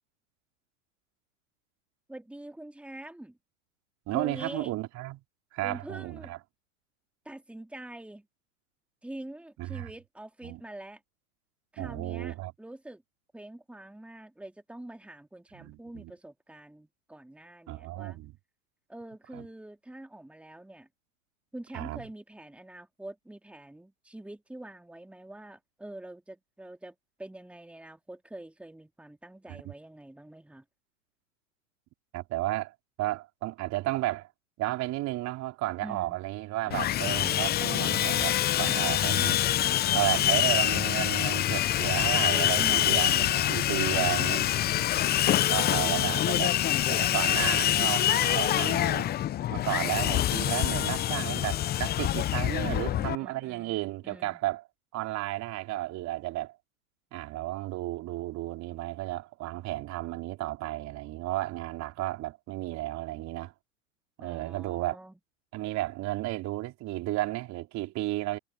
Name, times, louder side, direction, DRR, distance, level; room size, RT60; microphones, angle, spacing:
voice 1, 2.1-3.4 4.1-4.7 5.6-6.3 7.2-8.3 9.0-11.0 11.7-13.0 13.3-18.2 18.9-20.9 21.5-30.6 35.8-36.2 36.7-37.4 39.5-40.3 42.5-45.2 52.6-53.8 54.0-54.4 64.2-65.1, right 1 dB, 5° right, 2.6 m, -45 dB
voice 2, 4.1-5.2 5.5-6.4 9.6-9.9 10.4-10.6 11.8-12.5 15.5-16.1 17.7-18.3 19.3-19.5 21.7-22.1 29.5-29.7 32.1-34.3 34.6-39.4 39.9-44.5 45.2-46.6 46.8-49.1 49.5-54.6 54.9-56.6 57.1-63.5 64.2-65.0 65.5-68.4, right 17 dB, 40° right, 3.9 m, -33 dB
Sawing, 36.7-53.2, left 12 dB, 25° left, 0.7 m, -26 dB
sound 1, 39.0-46.3, left 12 dB, 75° left, 5.0 m, -46 dB
hypercardioid pair, 100°, 40 cm